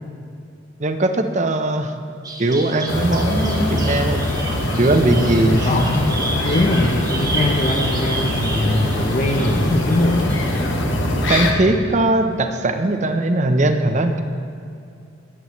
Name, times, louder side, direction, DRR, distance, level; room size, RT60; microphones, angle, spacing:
voice 1, 0.8-1.9 2.4-4.3 4.8-5.7 11.3-14.2, right 2 dB, 40° right, 7 dB, 0.7 m, -19 dB
Bird vocalization bird call bird song, 2.2-10.6, right 3 dB, 20° right, 1.0 m, -31 dB
sound 1, 2.9-11.5, left 1 dB, 70° left, 1.1 m, -22 dB
voice 2, 5.4-6.1 6.4-10.4 11.6-11.7, left 1 dB, 40° left, 0 dB, 0.7 m, -21 dB
17.0 x 8.7 x 3.1 m, 2.5 s
head